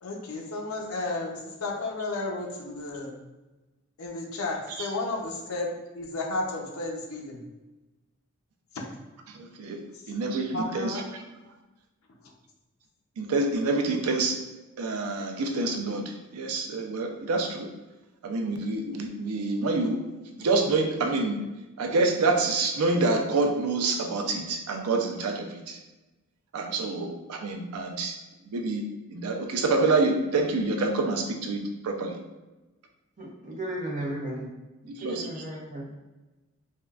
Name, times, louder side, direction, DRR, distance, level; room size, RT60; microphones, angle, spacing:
voice 1, 0.0-3.1 4.0-7.4 9.9-11.0 12.2-12.3, left 2 dB, 70° left, 0 dB, 0.6 m, -33 dB
voice 2, 9.3-11.0 13.2-14.4 14.8-17.7 18.2-21.4 21.8-25.8 26.5-28.2 28.5-32.2 34.9-35.3, right 3 dB, 85° right, 3 dB, 0.4 m, -27 dB
voice 3, 33.2-34.5 35.0-35.8, right 1 dB, 35° right, -3 dB, 0.7 m, -34 dB
3.5 x 2.1 x 2.3 m, 1.1 s
head